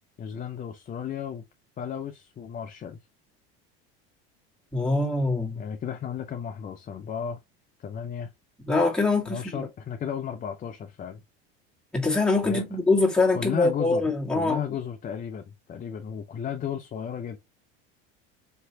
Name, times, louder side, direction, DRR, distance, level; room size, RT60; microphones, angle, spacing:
voice 1, 0.2-1.4 1.8-3.0 5.6-7.4 7.8-8.3 9.3-11.2 12.4-12.6 13.3-14.1 14.3-17.4, left 8 dB, 30° left, 0.6 m, -34 dB
voice 2, 4.7-5.6 8.7-9.7 11.9-14.6, left 3 dB, 5° left, 1.7 m, -24 dB
4.5 x 3.0 x 2.8 m
supercardioid pair, 105°, 30 cm